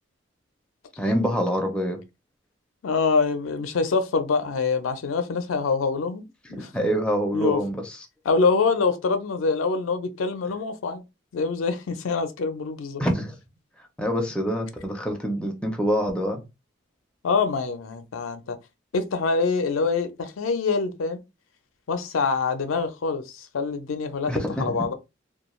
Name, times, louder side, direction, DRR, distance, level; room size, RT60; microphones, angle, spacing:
voice 1, 1.0-2.0 6.5-7.8 13.0-13.4 14.0-16.4 24.3-24.9, equal, 5° left, 0.4 m, -26 dB
voice 2, 2.8-6.7 7.3-7.6 8.2-11.0 11.3-13.0 17.2-18.6 18.9-21.2 21.9-24.9, left 4 dB, 85° left, 0.4 m, -25 dB
2.3 x 2.2 x 3.0 m
head